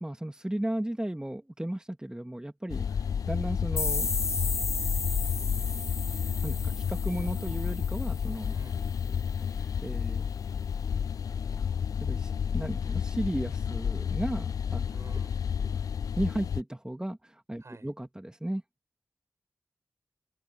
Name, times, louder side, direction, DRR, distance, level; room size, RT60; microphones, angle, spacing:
voice 1, 0.0-2.8 3.2-4.1 6.2-8.5 9.5-10.2 12.0-14.8 15.6-15.8 16.2-18.6, right 1 dB, 15° right, 1.7 m, -35 dB
sound 1, 2.7-16.6, left 7 dB, 90° left, 0.5 m, -31 dB
sound 2, 3.8-8.4, left 3 dB, 55° left, 1.1 m, -34 dB
voice 2, 8.5-8.9 14.8-15.5 17.6-17.9, right 3 dB, 55° right, 5.8 m, -51 dB
cardioid pair, 40°, 6 cm